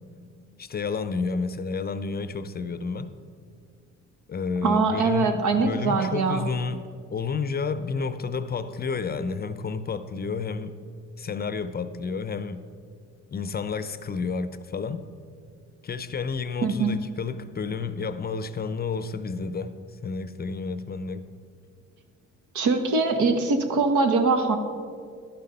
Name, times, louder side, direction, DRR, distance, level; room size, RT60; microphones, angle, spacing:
voice 1, 0.6-3.1 4.3-10.7 11.2-12.6 13.3-15.0 15.8-19.7 20.0-21.2, left 4 dB, 30° left, 0.5 m, -30 dB
voice 2, 4.6-6.5 16.6-17.0 22.5-24.6, right 4 dB, 75° right, 1.2 m, -22 dB
11.5 x 6.5 x 5.4 m
cardioid pair, 90°, 30 cm